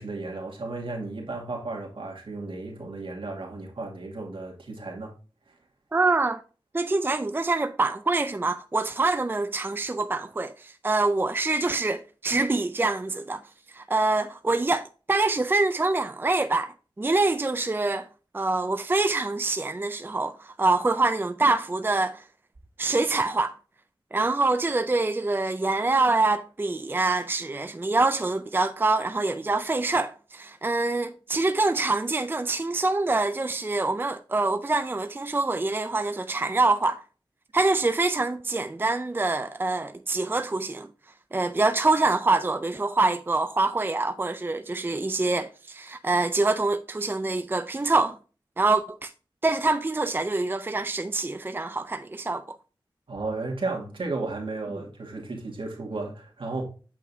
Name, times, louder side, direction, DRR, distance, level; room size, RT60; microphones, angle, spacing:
voice 1, 0.0-5.1 5.5-5.6 53.1-56.6, right 3 dB, 75° right, 2.3 m, -34 dB
voice 2, 5.9-6.4 6.7-13.4 13.7-18.1 18.3-22.2 22.8-23.5 24.1-37.0 37.5-40.9 41.3-48.2 48.6-49.1 49.4-52.6, right 3 dB, 25° right, 0.4 m, -25 dB
8.4 x 6.4 x 2.7 m
wide cardioid pair, 70°, 9 cm